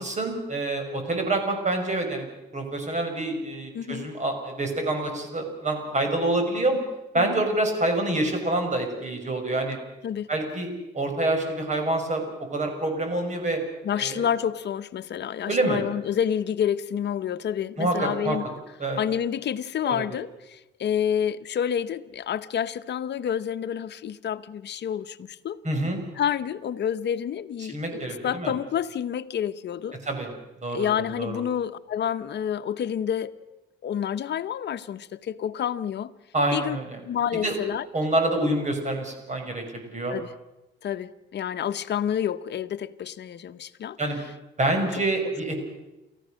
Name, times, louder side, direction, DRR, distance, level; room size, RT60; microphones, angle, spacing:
voice 1, 0.0-2.3 2.5-6.8 7.1-9.8 10.3-10.7 10.9-13.6 13.9-14.2 15.5-15.8 17.8-18.4 18.8-19.0 19.9-20.1 25.6-26.0 27.6-28.5 30.1-30.3 30.6-30.9 31.2-31.4 36.3-37.0 37.4-37.6 37.9-40.2 44.0-44.2 44.6-45.5, right 2 dB, 35° right, 5 dB, 6.0 m, -27 dB
voice 2, 3.7-4.1 7.2-7.5 10.0-10.3 13.8-18.5 19.0-25.6 26.2-30.0 30.7-33.3 33.8-36.1 36.5-36.8 37.0-37.9 40.1-40.3 40.8-44.0 44.9-45.0, left 9 dB, 60° left, 12 dB, 1.0 m, -29 dB
29.5 x 14.5 x 6.5 m, 0.99 s
cardioid pair, 90°, 20 cm